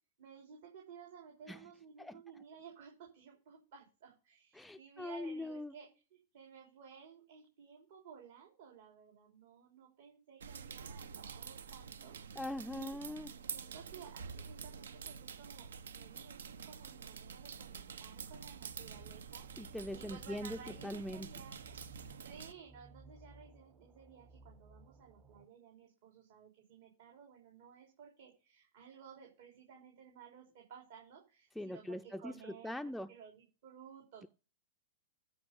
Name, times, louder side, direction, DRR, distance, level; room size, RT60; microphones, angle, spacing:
voice 1, 0.2-5.9 6.3-12.4 12.7-13.0 13.3-19.5 19.9-34.3, right 7 dB, 65° right, 3.6 m, -56 dB
voice 2, 4.5-5.7 12.4-13.3 19.6-21.3 31.6-33.1, left 1 dB, ahead, 0.4 m, -42 dB
sound 1, 10.4-22.5, right 6 dB, 85° right, 0.8 m, -48 dB
sound 2, 18.2-25.4, right 2 dB, 30° right, 1.3 m, -60 dB
13.0 x 5.0 x 5.2 m
hypercardioid pair, 115°, 0 cm